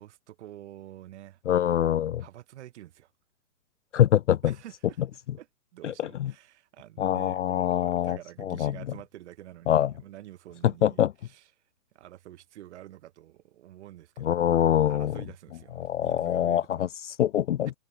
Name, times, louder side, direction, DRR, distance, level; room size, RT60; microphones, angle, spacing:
voice 1, 0.0-1.4 2.2-3.1 4.4-5.0 5.4-5.5 5.7-11.5 11.9-14.5 14.8-16.8, right 13 dB, 45° right, 4.5 m, -48 dB
voice 2, 1.5-2.2 3.9-4.5 5.8-6.3 7.0-8.7 9.7-9.9 10.8-11.1 14.2-15.2 15.8-17.7, left 11 dB, 50° left, 0.6 m, -24 dB
hypercardioid pair, 140°, 47 cm